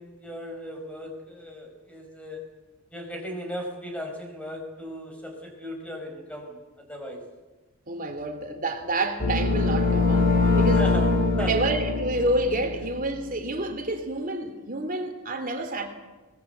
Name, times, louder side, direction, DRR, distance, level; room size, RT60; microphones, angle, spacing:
voice 1, 0.0-2.5 2.9-7.2 10.8-11.1 11.4-11.5, equal, 5° left, 5.2 m, -37 dB
voice 2, 7.9-10.9 11.4-15.9, right 2 dB, 40° right, 2.9 m, -28 dB
sound 1, 9.2-13.2, left 3 dB, 40° left, 2.8 m, -23 dB
23.5 x 20.0 x 8.1 m
head